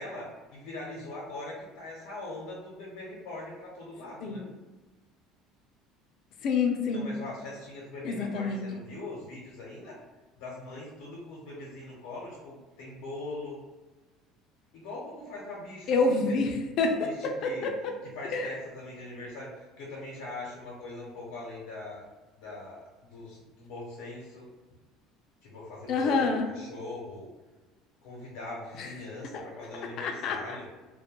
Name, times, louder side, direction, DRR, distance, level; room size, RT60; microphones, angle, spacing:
voice 1, 0.0-4.4 6.9-10.0 10.4-13.6 14.7-16.4 17.0-17.7 18.2-22.0 22.4-24.5 25.4-27.3 28.0-30.7, left 2 dB, 85° left, -4 dB, 0.6 m, -41 dB
voice 2, 6.4-7.1 8.0-8.7 15.9-17.9 18.3-18.5 25.9-26.5 28.8-28.9 29.3-29.4 30.0-30.6, left 4 dB, 45° left, 3 dB, 0.3 m, -28 dB
2.2 x 2.1 x 2.8 m, 1.2 s
cardioid pair, 155°, 0 cm